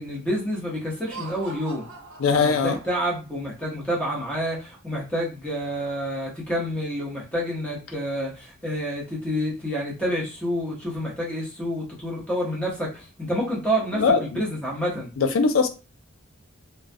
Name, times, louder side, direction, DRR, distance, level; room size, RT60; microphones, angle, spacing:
voice 1, 0.0-1.8 2.4-15.1, equal, 5° left, 0.8 m, -28 dB
Laughter, 0.9-3.3, right 4 dB, 70° right, 0.6 m, -42 dB
voice 2, 2.2-2.8 13.9-14.2 15.2-15.7, left 5 dB, 75° left, 0.4 m, -20 dB
2.2 x 2.2 x 2.6 m
head